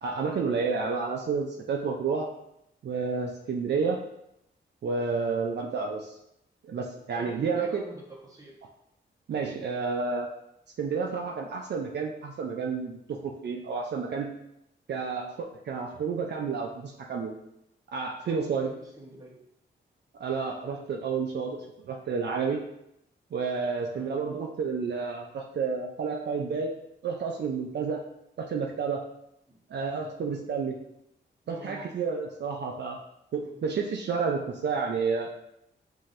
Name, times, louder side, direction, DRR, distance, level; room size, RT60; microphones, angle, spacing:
voice 1, 0.0-2.3 2.8-4.1 4.8-6.2 6.6-7.8 9.3-10.3 10.8-14.4 14.9-17.4 17.9-18.7 20.1-22.7 23.3-28.0 28.4-29.0 29.7-30.8 31.5-33.0 33.3-35.3, right 5 dB, 60° right, 1 dB, 0.4 m, -30 dB
voice 2, 7.1-8.6 18.2-19.4 23.9-24.1 29.5-29.6 31.4-31.9 33.4-33.7, right 1 dB, 15° right, -3 dB, 1.0 m, -47 dB
5.7 x 2.7 x 2.5 m, 0.81 s
wide cardioid pair, 95°, 20 cm